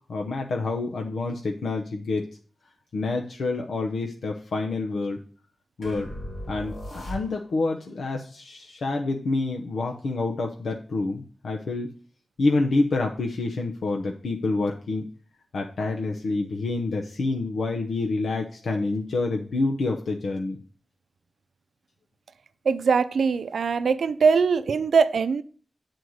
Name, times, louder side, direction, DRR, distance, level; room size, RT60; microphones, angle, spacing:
voice 1, 0.1-2.3 2.9-5.2 5.8-6.1 6.5-11.9 12.4-15.1 15.5-20.6, left 3 dB, 85° left, 2 dB, 0.9 m, -27 dB
sound 1, 5.8-7.7, equal, 55° left, 3.8 m, -37 dB
voice 2, 22.7-25.4, right 5 dB, 85° right, 14 dB, 0.5 m, -21 dB
9.3 x 4.5 x 6.4 m, 0.41 s
wide cardioid pair, 140°, 0 cm